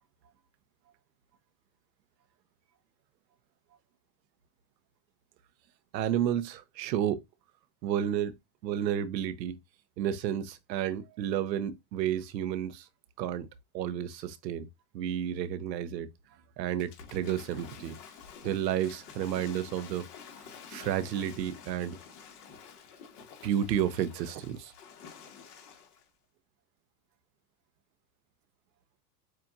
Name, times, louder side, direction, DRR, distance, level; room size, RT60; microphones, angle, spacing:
voice 1, 5.9-7.2 7.8-8.3 8.6-9.6 10.0-12.9 13.2-13.5 13.7-14.7 14.9-16.1 16.6-18.0 18.4-20.1 20.7-22.0 23.4-24.7, right 10 dB, 85° right, 0.8 m, -31 dB
Waves surf / Splash splatter, 16.8-26.1, left 6 dB, 65° left, 1.8 m, -50 dB
7.5 x 2.5 x 2.5 m
supercardioid pair, 115°, 49 cm